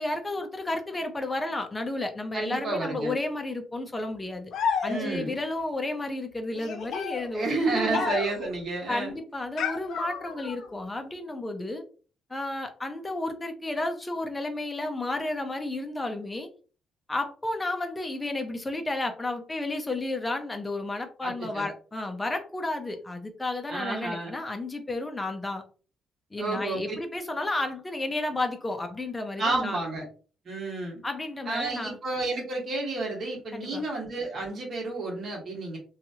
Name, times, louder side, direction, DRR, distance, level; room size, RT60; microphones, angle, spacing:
voice 1, 0.0-4.5 4.8-8.1 8.9-11.8 12.3-16.5 17.1-25.6 26.3-29.8 31.0-32.0 33.5-33.8, left 2 dB, 15° left, 5 dB, 0.5 m, -32 dB
voice 2, 2.3-3.1 4.9-5.3 7.3-9.1 21.2-21.7 23.7-24.4 26.4-26.8 29.4-30.0 30.4-31.0 31.4-35.8, right 2 dB, 45° right, -2 dB, 1.4 m, -31 dB
sound 1, 4.5-5.4 6.5-8.5 9.6-10.7, left 6 dB, 70° left, 0.7 m, -32 dB
3.0 x 2.3 x 2.7 m, 0.38 s
cardioid pair, 145°, 0 cm